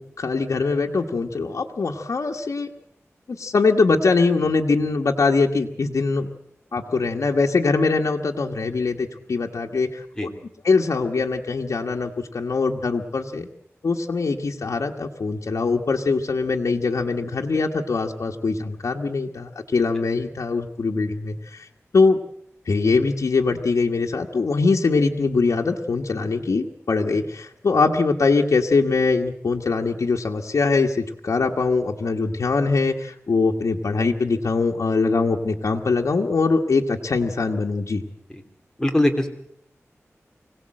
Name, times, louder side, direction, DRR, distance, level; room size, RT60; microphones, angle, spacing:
voice 1, 0.0-2.7 3.3-6.3 6.7-10.3 10.6-13.5 13.8-21.6 21.9-22.2 22.7-38.0, left 4 dB, 85° left, 1 dB, 1.4 m, -22 dB
voice 2, 38.8-39.3, left 1 dB, 10° left, 4 dB, 2.9 m, -21 dB
25.0 x 17.5 x 7.7 m, 0.69 s
wide cardioid pair, 75°, 5 cm